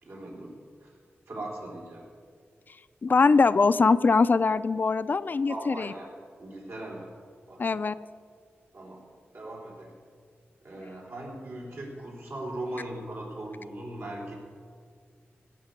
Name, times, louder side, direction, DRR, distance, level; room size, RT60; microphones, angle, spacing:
voice 1, 0.0-0.9 1.3-2.1 5.5-6.1 6.4-7.1 7.5-7.8 8.7-9.1 9.3-10.0 10.6-14.3, right 1 dB, 75° right, -3 dB, 3.6 m, -39 dB
voice 2, 3.0-5.9 7.6-8.0, left 4 dB, 45° left, 14 dB, 0.4 m, -22 dB
16.5 x 5.6 x 8.2 m, 2.1 s
wide cardioid pair, 100°, 4 cm